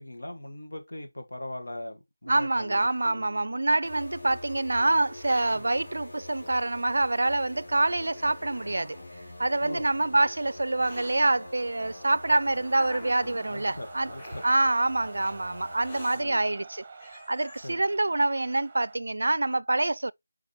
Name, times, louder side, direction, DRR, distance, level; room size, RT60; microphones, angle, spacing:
voice 1, 0.0-3.2 4.2-4.4 5.5-5.7 9.6-9.9 13.5-14.4 16.1-16.4 17.6-17.8, left 1 dB, 75° left, 2.0 m, -40 dB
voice 2, 2.3-9.0 9.4-14.1 14.4-16.8 17.1-20.1, right 2 dB, 65° right, 0.4 m, -26 dB
Hiss, 2.4-4.1 5.0-5.6 6.6-6.7 7.5-7.6 8.1-9.1 10.0-11.2 12.0-13.5 14.1-14.5 15.2-15.3 15.8-16.2 16.7-16.8 17.0-17.7, left 1 dB, 20° left, 1.5 m, -47 dB
sound 1, 3.8-16.1, left 1 dB, 45° left, 3.7 m, -45 dB
sound 2, 9.1-19.0, right 4 dB, 15° right, 0.8 m, -50 dB
6.6 x 4.7 x 3.0 m
figure-of-eight pair, 175°, 0 cm